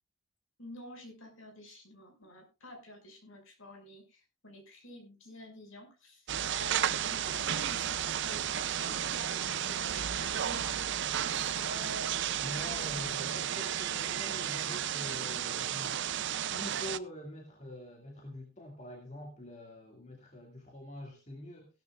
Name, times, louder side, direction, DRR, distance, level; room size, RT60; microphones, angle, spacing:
voice 1, 0.6-10.8 11.3-12.2 12.5-13.0, equal, 65° left, 4 dB, 6.0 m, -48 dB
sound 1, 6.3-17.0, right 9 dB, 55° right, 0.5 m, -33 dB
voice 2, 12.4-16.2 16.5-21.7, left 1 dB, 35° left, 1 dB, 2.3 m, -45 dB
16.5 x 13.0 x 2.5 m, 0.28 s
head